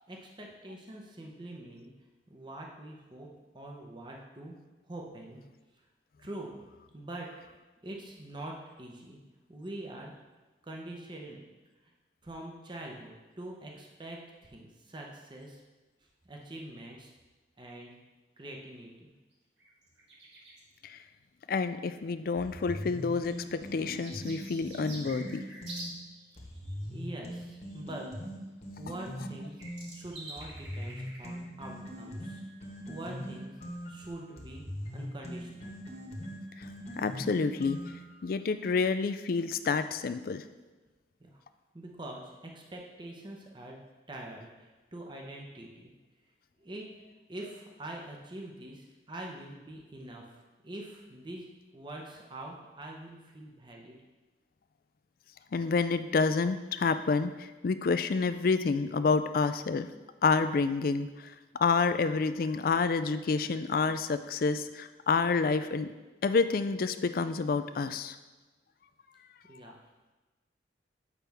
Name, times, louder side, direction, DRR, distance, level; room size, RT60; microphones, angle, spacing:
voice 1, 0.1-1.9 2.3-3.3 3.5-4.5 4.9-5.4 6.2-6.6 6.9-7.3 7.8-9.2 9.5-10.1 10.6-11.9 12.2-15.6 16.2-17.1 17.6-17.9 18.4-19.1 26.9-28.1 28.8-29.6 29.9-32.4 32.9-33.5 33.9-34.6 34.9-35.8 41.2-41.4 41.7-43.8 44.1-45.9 46.6-46.8 47.3-51.5 51.7-54.0 69.5-69.8, right 1 dB, 25° right, 0 dB, 0.8 m, -44 dB
sound 1, 19.3-19.4 19.6-20.6 22.0-22.1 23.1-25.9 26.2-27.8 28.9-29.0 29.2-31.3 31.9-32.0, right 1 dB, 80° right, 1.7 m, -48 dB
voice 2, 21.5-25.4 36.6-36.7 36.9-37.8 38.2-40.4 55.5-59.9 60.2-65.9 66.2-68.2, left 4 dB, 55° left, 11 dB, 0.4 m, -28 dB
sound 2, 22.4-25.9 26.4-29.9 30.4-38.2, equal, 35° left, 1.2 m, -41 dB
8.4 x 5.7 x 3.5 m, 1.2 s
head